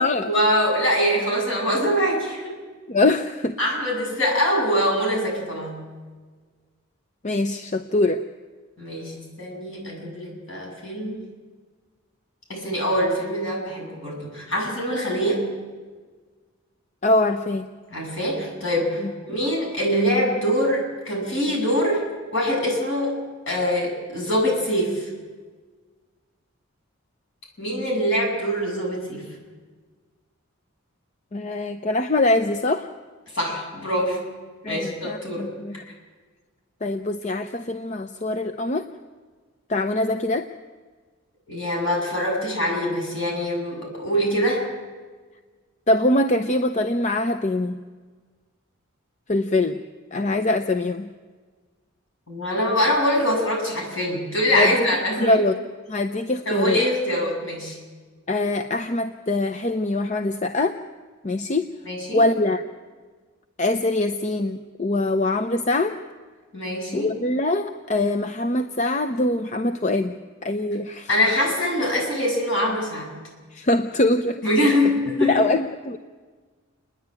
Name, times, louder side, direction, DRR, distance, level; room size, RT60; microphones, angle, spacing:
voice 1, 0.2-2.5 3.6-5.8 8.8-11.2 12.5-15.4 17.9-22.1 22.3-25.1 27.6-29.3 33.3-34.2 34.7-35.5 41.5-44.6 52.3-55.4 56.5-57.8 61.8-62.3 66.5-67.1 71.1-73.1 74.4-75.5, equal, 60° left, -1 dB, 7.9 m, -24 dB
voice 2, 2.9-3.5 7.2-8.2 17.0-17.7 31.3-32.9 34.6-35.8 36.8-38.9 39.7-40.5 45.9-47.8 49.3-49.8 50.1-51.1 54.5-54.7 55.2-55.5 55.9-56.8 58.3-60.8 61.2-61.7 62.1-62.6 63.6-66.0 66.9-71.1 73.5-74.8 75.3-76.0, left 2 dB, 30° left, 9 dB, 0.6 m, -23 dB
29.0 x 10.5 x 9.0 m, 1.4 s
head